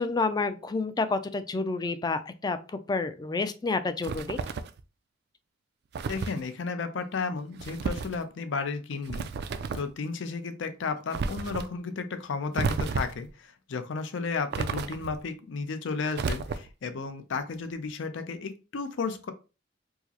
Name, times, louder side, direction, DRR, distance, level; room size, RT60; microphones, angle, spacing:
voice 1, 0.0-2.6 2.9-4.4, left 3 dB, 20° left, 11 dB, 0.3 m, -29 dB
sound 1, 4.0-4.8 5.9-6.4 7.6-8.2 9.0-9.9 11.1-11.7 12.5-13.3 14.5-15.2 16.1-16.8, right 4 dB, 60° right, 0.3 m, -32 dB
voice 2, 6.1-9.3 9.7-19.3, left 4 dB, 85° left, 9 dB, 0.5 m, -33 dB
4.6 x 2.0 x 2.8 m, 0.31 s
head